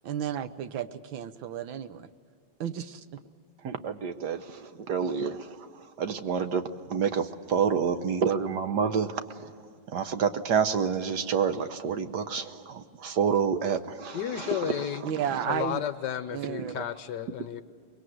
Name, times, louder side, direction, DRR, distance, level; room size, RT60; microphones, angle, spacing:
voice 1, 0.0-2.1 2.6-3.0 15.0-15.8 16.3-16.8, right 9 dB, 75° right, 11 dB, 1.7 m, -33 dB
voice 2, 3.6-6.6 6.9-9.5 9.9-14.9 15.2-15.4 16.6-16.7, right 6 dB, 60° right, 9 dB, 1.5 m, -29 dB
voice 3, 14.1-15.1 15.4-17.6, left 10 dB, 65° left, 12 dB, 1.3 m, -32 dB
24.5 x 21.5 x 7.9 m, 2.2 s
omnidirectional pair, 2.2 m